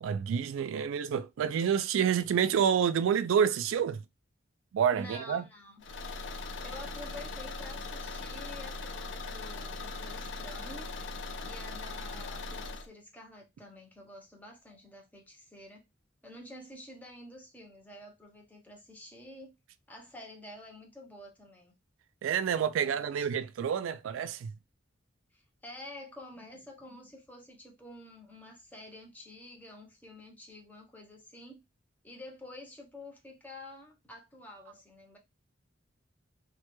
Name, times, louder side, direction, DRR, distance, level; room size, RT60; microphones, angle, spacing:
voice 1, 0.0-4.0 4.7-5.4 22.2-24.5, right 8 dB, 85° right, 0.3 m, -28 dB
voice 2, 4.9-5.8 6.6-10.9 11.4-15.8 16.2-19.6 19.9-21.7 22.8-23.3 25.3-31.6 32.0-35.2, left 1 dB, 10° left, 0.5 m, -49 dB
Car / Engine, 5.8-12.9, left 3 dB, 65° left, 0.3 m, -40 dB
2.1 x 2.1 x 2.9 m
head